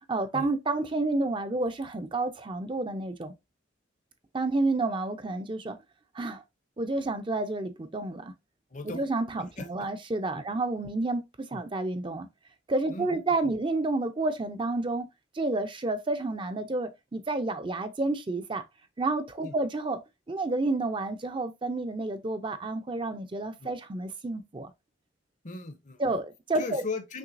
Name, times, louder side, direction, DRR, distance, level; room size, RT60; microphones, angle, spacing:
voice 1, 0.1-3.3 4.3-5.8 6.1-6.4 6.8-8.3 8.8-12.3 12.7-15.1 15.3-18.6 19.0-20.0 20.3-24.7 26.0-26.8, right 2 dB, 25° right, 0.5 m, -30 dB
voice 2, 8.7-9.1 9.6-9.9 10.3-10.4 11.5-11.6 12.9-13.5 19.4-19.5 23.6-23.7 25.4-26.2 26.5-27.2, left 3 dB, 40° left, 0.6 m, -38 dB
6.0 x 3.2 x 2.5 m
head